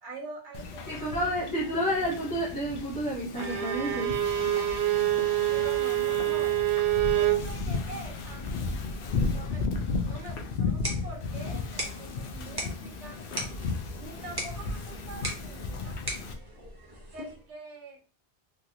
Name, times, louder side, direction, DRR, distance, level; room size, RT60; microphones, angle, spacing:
voice 1, 0.0-1.5 1.7-2.1 5.5-6.7 7.1-8.7 9.3-13.2 14.0-16.0 17.1-18.0, right 3 dB, 80° right, 1 dB, 1.1 m, -45 dB
Wind / Ocean, 0.5-16.3, left 4 dB, 65° left, 0.7 m, -35 dB
voice 2, 0.9-4.1, equal, 20° left, -9 dB, 0.7 m, -30 dB
Bowed string instrument, 3.4-7.5, right 13 dB, 65° right, 0.8 m, -26 dB
sound 1, 10.5-17.5, right 1 dB, 25° right, 0.7 m, -40 dB
3.1 x 2.4 x 2.7 m, 0.35 s
omnidirectional pair, 1.1 m